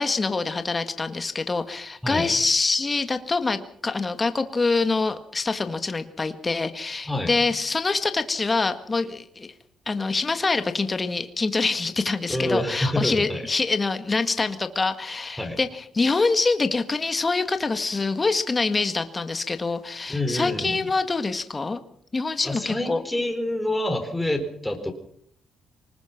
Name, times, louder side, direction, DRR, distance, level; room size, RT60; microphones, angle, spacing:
voice 1, 0.0-9.5 9.9-21.8 22.1-23.0, left 3 dB, 25° left, 9 dB, 1.7 m, -25 dB
voice 2, 2.0-2.3 7.1-7.4 12.3-13.5 15.4-15.6 20.1-20.9 22.4-24.9, left 1 dB, 5° left, 4 dB, 4.4 m, -27 dB
24.0 x 20.0 x 6.0 m, 0.63 s
cardioid pair, 90°, 0 cm